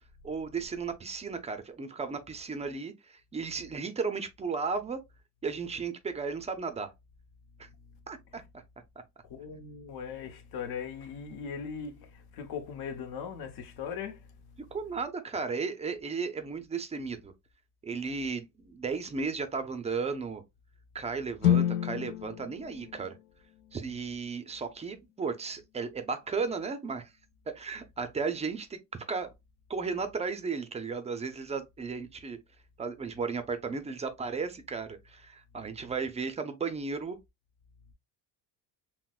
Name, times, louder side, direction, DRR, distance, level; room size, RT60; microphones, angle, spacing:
voice 1, 0.2-5.0 5.4-6.9 7.6-7.7 8.1-8.6 14.6-17.3 17.8-20.4 20.9-23.2 23.7-27.1 27.5-29.3 29.7-32.4 32.8-37.2, right 5 dB, 15° right, 0.4 m, -35 dB
voice 2, 9.2-14.6, left 7 dB, 70° left, 1.0 m, -39 dB
sound 1, 21.4-25.5, left 11 dB, 85° left, 0.6 m, -31 dB
5.8 x 2.1 x 2.3 m
cardioid pair, 155°, 40 cm